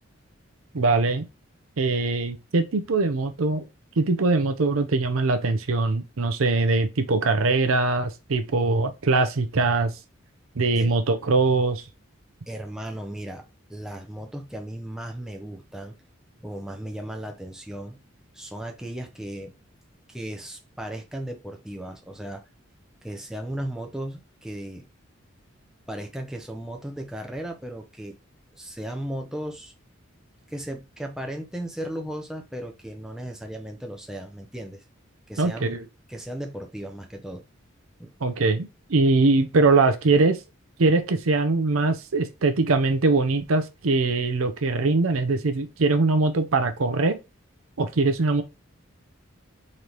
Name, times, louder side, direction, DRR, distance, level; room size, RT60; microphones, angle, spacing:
voice 1, 0.7-1.2 1.8-3.6 4.0-9.9 10.6-11.8 35.4-35.8 38.2-40.4 40.8-47.2 47.8-48.4, right 3 dB, 90° right, 0.7 m, -22 dB
voice 2, 12.5-13.4 13.7-16.0 16.4-18.0 18.3-19.5 20.1-22.4 23.0-24.9 25.9-28.2 28.5-29.7 30.5-34.8 35.3-35.7 36.1-37.4 38.0-38.1, right 1 dB, 5° right, 0.6 m, -36 dB
3.9 x 3.3 x 2.9 m
head